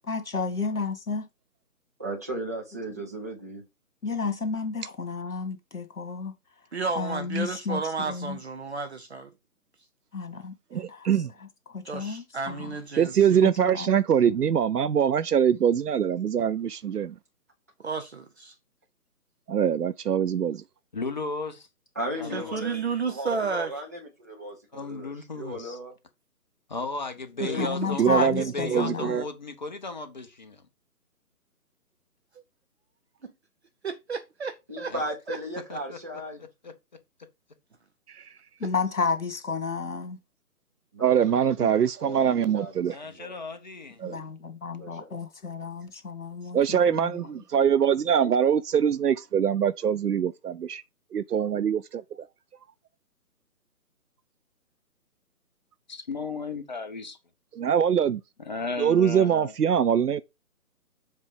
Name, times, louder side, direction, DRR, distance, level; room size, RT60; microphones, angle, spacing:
voice 1, 0.1-1.2 4.0-6.3 7.0-8.4 10.1-11.1 11.7-12.8 13.4-13.9 27.5-29.2 38.6-40.2 44.0-47.1, left 4 dB, 60° left, 1.9 m, -32 dB
voice 2, 2.0-3.6 21.9-22.8 23.1-25.9 27.4-29.3 34.7-36.5 40.9-41.3 42.0-43.3 44.8-45.1, right 1 dB, 10° right, 0.7 m, -37 dB
voice 3, 6.7-9.3 11.8-13.4 17.8-18.5 22.3-23.7 27.4-27.7 33.2-33.3 33.8-34.9 35.3-35.4 38.6-38.7, right 5 dB, 45° right, 0.8 m, -32 dB
voice 4, 10.7-11.3 12.9-17.1 19.5-20.6 28.0-29.2 38.1-38.3 41.0-43.0 44.0-44.2 46.5-50.8 51.1-52.3 57.5-58.2 58.8-60.2, right 8 dB, 85° right, 0.6 m, -23 dB
voice 5, 20.9-21.7 22.2-22.5 24.7-25.8 26.7-30.6 34.9-35.0 35.7-36.0 36.6-36.7 42.9-44.0 55.9-57.2 58.5-59.5, left 3 dB, 30° left, 0.8 m, -35 dB
7.4 x 3.3 x 5.0 m
figure-of-eight pair, 145°, 45 cm